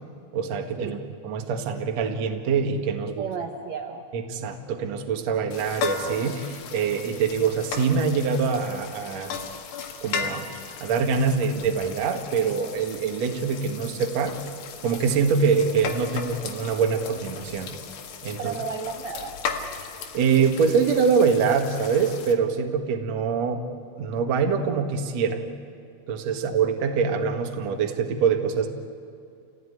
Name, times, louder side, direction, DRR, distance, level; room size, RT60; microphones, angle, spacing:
voice 1, 0.3-1.0 1.2-3.2 4.1-9.4 10.0-10.5 10.8-14.4 14.8-17.7 18.2-18.6 20.1-23.7 24.0-25.4 26.1-28.7, right 6 dB, 50° right, 4 dB, 2.3 m, -24 dB
voice 2, 3.0-4.0 18.4-19.3 26.3-26.4, right 5 dB, 80° right, 3 dB, 1.5 m, -33 dB
sound 1, 5.5-22.3, left 6 dB, 75° left, 3.7 m, -36 dB
28.5 x 17.0 x 9.8 m, 2.5 s
omnidirectional pair, 4.9 m